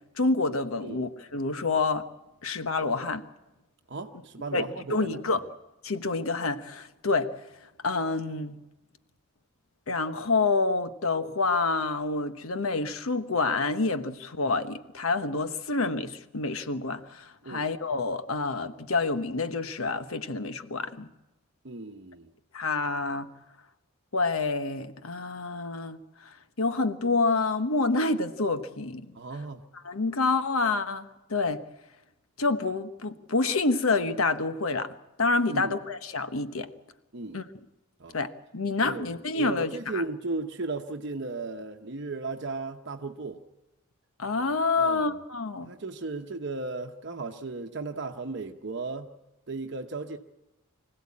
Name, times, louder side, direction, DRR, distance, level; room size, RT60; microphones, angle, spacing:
voice 1, 0.2-2.1 2.4-3.2 4.5-5.4 5.8-7.3 7.8-8.6 9.9-21.1 22.5-23.3 24.1-29.1 29.8-31.6 32.4-34.9 35.2-36.7 37.3-37.4 38.1-40.0 44.2-45.7, left 3 dB, 85° left, 1.1 m, -28 dB
voice 2, 3.9-5.4 17.4-17.7 21.6-22.3 29.1-29.6 35.5-35.8 37.1-37.4 38.0-38.2 38.8-43.4 44.8-45.1 45.6-49.1 49.5-50.2, right 3 dB, 55° right, 1.0 m, -35 dB
25.0 x 16.0 x 8.5 m
head